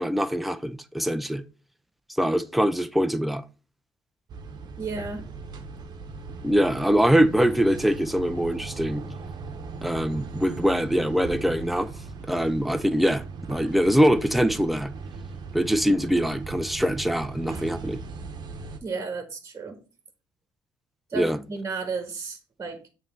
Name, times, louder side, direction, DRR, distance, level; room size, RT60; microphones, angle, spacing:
voice 1, 0.0-1.4 2.2-3.4 6.4-9.0 9.8-11.9 12.3-13.2 13.5-14.9 15.5-18.0 21.1-21.4, equal, ahead, 0.5 m, -23 dB
sound 1, 4.3-18.8, right 4 dB, 55° right, 1.0 m, -38 dB
voice 2, 4.8-5.2 18.8-19.8 21.1-22.9, right 4 dB, 30° right, 1.4 m, -33 dB
7.3 x 3.3 x 4.5 m
cardioid pair, 80°, 9 cm